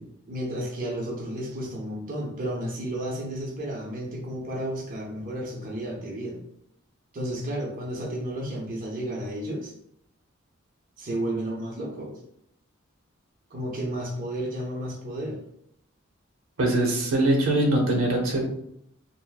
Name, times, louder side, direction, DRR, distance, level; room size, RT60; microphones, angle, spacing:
voice 1, 0.3-6.4 7.1-9.7 11.0-12.2 13.5-15.4, right 1 dB, 45° right, -2 dB, 0.6 m, -32 dB
voice 2, 16.6-18.4, right 1 dB, 85° right, 0 dB, 0.8 m, -22 dB
3.2 x 2.5 x 2.3 m, 0.73 s
head